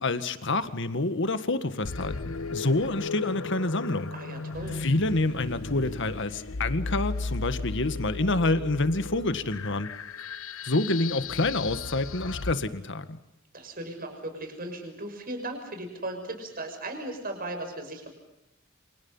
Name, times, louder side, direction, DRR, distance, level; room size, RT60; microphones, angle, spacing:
voice 1, 0.0-4.1 4.7-9.9 10.6-13.2, left 2 dB, 60° left, 10 dB, 1.8 m, -27 dB
sound 1, 1.8-12.5, left 3 dB, 85° left, 1.1 m, -35 dB
voice 2, 4.1-4.8 13.5-18.1, right 1 dB, 45° right, 5 dB, 6.3 m, -37 dB
29.0 x 27.5 x 5.7 m, 0.89 s
head